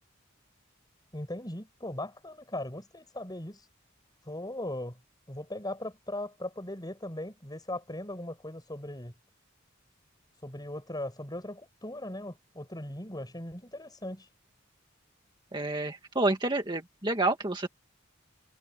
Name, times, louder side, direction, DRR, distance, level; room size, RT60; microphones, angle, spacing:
voice 1, 1.1-3.6 4.3-5.0 5.3-9.1 10.4-14.3, left 1 dB, 20° left, 7.7 m, -39 dB
voice 2, 15.5-17.7, right 2 dB, 25° right, 1.9 m, -29 dB
head